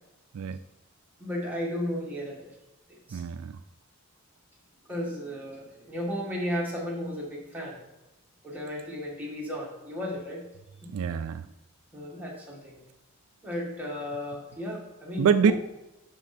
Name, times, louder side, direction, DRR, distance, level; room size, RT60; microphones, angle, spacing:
voice 1, 1.2-2.5 2.9-3.2 4.9-7.8 8.4-10.4 10.8-10.9 11.9-12.8 13.4-15.5, left 1 dB, 10° right, -3 dB, 1.8 m, -34 dB
voice 2, 3.1-3.6 10.9-11.5 15.2-15.5, right 6 dB, 70° right, 11 dB, 0.3 m, -25 dB
11.0 x 3.9 x 4.3 m, 0.96 s
head